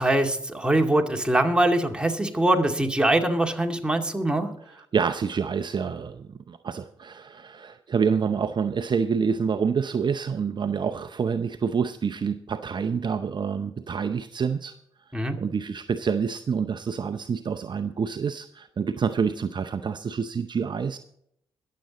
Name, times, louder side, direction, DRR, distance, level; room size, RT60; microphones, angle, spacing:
voice 1, 0.0-4.5 15.1-15.4, right 1 dB, 10° right, 4 dB, 2.2 m, -23 dB
voice 2, 4.7-14.7 15.1-21.0, right 6 dB, 45° right, 10 dB, 0.6 m, -27 dB
22.0 x 7.7 x 4.1 m, 0.71 s
hypercardioid pair, 45°, 11 cm